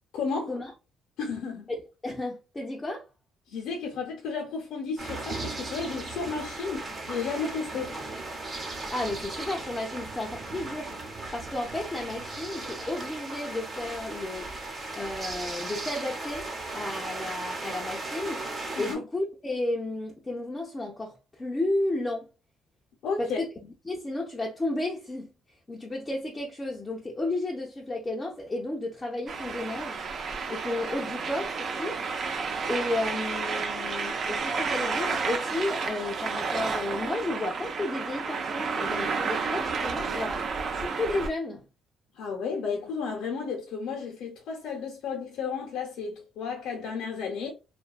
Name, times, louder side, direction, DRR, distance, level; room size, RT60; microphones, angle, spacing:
voice 1, 0.1-0.5 1.2-1.7 3.5-8.0 18.7-19.0 23.0-23.4 42.1-47.5, left 5 dB, 80° left, 0.6 m, -33 dB
voice 2, 1.7-3.1 8.8-10.9 11.3-14.5 15.0-16.5 16.7-18.4 18.8-22.3 23.2-25.3 25.7-30.0 30.5-32.0 32.7-40.4 40.7-41.6, left 2 dB, 20° left, 0.4 m, -32 dB
sound 1, 5.0-19.0, right 2 dB, 35° right, 0.8 m, -37 dB
sound 2, 29.3-41.3, right 4 dB, 50° right, 0.4 m, -31 dB
2.6 x 2.2 x 2.3 m
cardioid pair, 120°, 0 cm